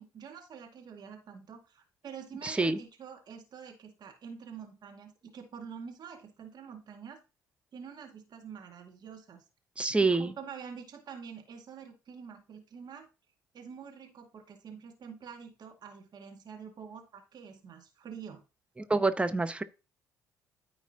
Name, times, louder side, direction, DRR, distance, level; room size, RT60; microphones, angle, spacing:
voice 1, 0.0-7.2 7.7-9.4 10.0-13.1 13.5-18.4, right 7 dB, 45° right, 2.0 m, -46 dB
voice 2, 2.4-2.8 9.8-10.3 18.9-19.6, right 3 dB, 10° right, 0.9 m, -27 dB
13.5 x 4.8 x 2.8 m
figure-of-eight pair, 50°, 9 cm